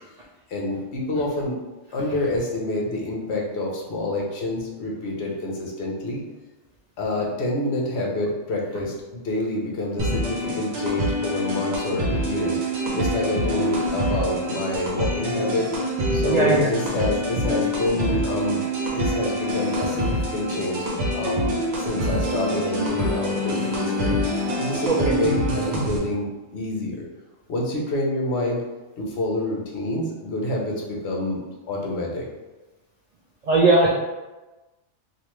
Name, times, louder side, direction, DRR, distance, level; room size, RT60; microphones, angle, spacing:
voice 1, 0.5-1.6 1.9-6.2 7.0-15.7 16.1-27.0 27.5-28.6 29.0-31.4 31.7-32.3, left 2 dB, 65° left, -1 dB, 1.0 m, -27 dB
sound 1, 10.0-26.0, equal, 60° right, 1.0 m, -25 dB
voice 2, 16.3-16.7 24.9-25.0 33.5-33.9, right 2 dB, 85° right, -4 dB, 0.3 m, -18 dB
3.3 x 2.6 x 3.0 m, 1.1 s
omnidirectional pair, 1.3 m